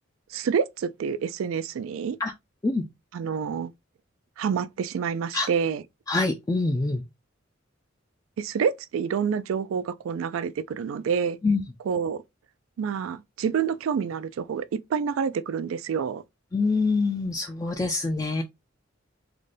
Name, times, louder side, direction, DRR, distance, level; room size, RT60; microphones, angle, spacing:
voice 1, 0.3-2.2 3.1-3.7 4.4-5.8 8.4-11.4 11.9-12.2 12.8-16.2, right 6 dB, 80° right, 0.3 m, -28 dB
voice 2, 6.1-7.0 11.4-11.6 16.5-18.4, left 3 dB, 15° left, 0.3 m, -25 dB
3.9 x 2.2 x 3.2 m
head